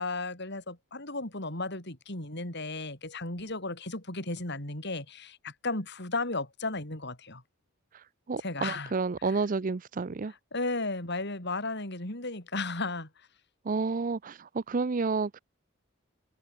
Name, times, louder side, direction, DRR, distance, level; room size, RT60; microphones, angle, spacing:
voice 1, 0.0-7.4 8.4-8.9 9.2-9.4 10.5-13.1, left 2 dB, 55° left, 6.2 m, -34 dB
voice 2, 8.3-10.3 13.7-15.4, right 4 dB, 40° right, 0.5 m, -30 dB
head